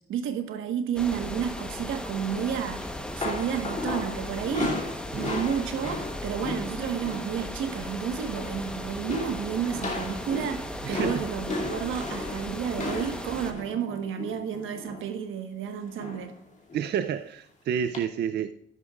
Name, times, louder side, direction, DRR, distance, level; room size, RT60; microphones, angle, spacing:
voice 1, 0.1-2.8 3.2-4.8 5.1-16.3, right 8 dB, 85° right, 1.4 m, -31 dB
sound 1, 1.0-13.5, left 1 dB, 5° left, 1.1 m, -37 dB
sound 2, 2.8-7.4 7.6-7.9 8.2-8.7 9.1-15.1 16.0-16.4 16.7-16.9 17.9-18.0, left 2 dB, 35° left, 2.7 m, -35 dB
voice 2, 10.8-11.2 16.7-18.5, right 8 dB, 60° right, 0.5 m, -29 dB
12.0 x 11.0 x 2.4 m
cardioid pair, 90°, 20 cm